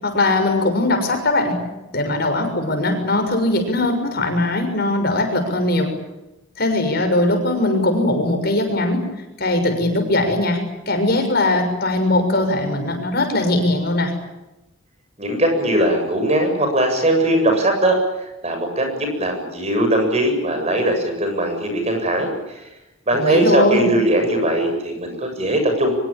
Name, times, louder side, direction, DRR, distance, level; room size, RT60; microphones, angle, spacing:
voice 1, 0.0-1.6 1.9-5.9 6.6-9.0 9.4-10.6 10.9-14.1 23.1-23.9, left 2 dB, 50° left, 5 dB, 6.6 m, -20 dB
voice 2, 15.2-22.6 23.1-25.9, right 1 dB, 30° right, 4 dB, 7.6 m, -20 dB
25.0 x 23.0 x 8.9 m, 0.96 s
head